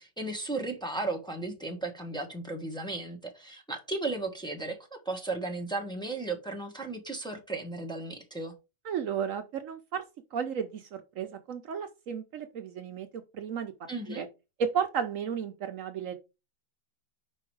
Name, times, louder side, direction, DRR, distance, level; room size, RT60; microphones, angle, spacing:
voice 1, 0.0-4.8 5.0-8.5 13.9-14.3, right 2 dB, 5° left, 1.3 m, -35 dB
voice 2, 8.8-10.0 10.3-14.3 14.6-16.1, right 7 dB, 65° right, 1.1 m, -34 dB
5.4 x 4.7 x 4.7 m
omnidirectional pair, 1.5 m